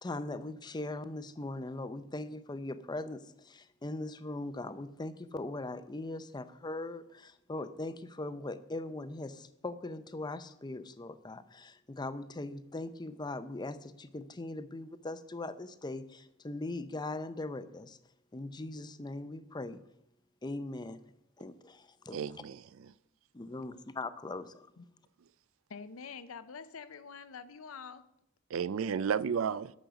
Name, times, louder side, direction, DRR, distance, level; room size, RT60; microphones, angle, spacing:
voice 1, 0.0-18.0 18.3-19.8 20.4-21.0 21.4-22.2 23.3-24.7, left 2 dB, 20° left, 0.6 m, -40 dB
voice 2, 22.1-22.9 28.5-29.7, right 7 dB, 70° right, 0.4 m, -33 dB
voice 3, 25.7-28.0, left 5 dB, 80° left, 0.7 m, -46 dB
10.0 x 6.3 x 6.9 m
head